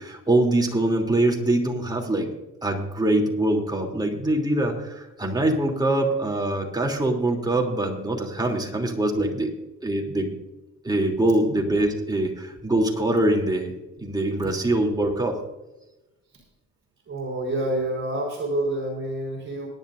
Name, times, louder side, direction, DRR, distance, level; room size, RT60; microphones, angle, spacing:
voice 1, 0.0-2.3 2.6-9.5 9.8-10.4 10.8-13.7 14.0-15.4, right 1 dB, 15° right, 0 dB, 3.2 m, -23 dB
voice 2, 17.1-19.7, right 1 dB, 40° right, -2 dB, 4.4 m, -28 dB
22.0 x 10.5 x 2.6 m, 1.0 s
cardioid pair, 90°, 30 cm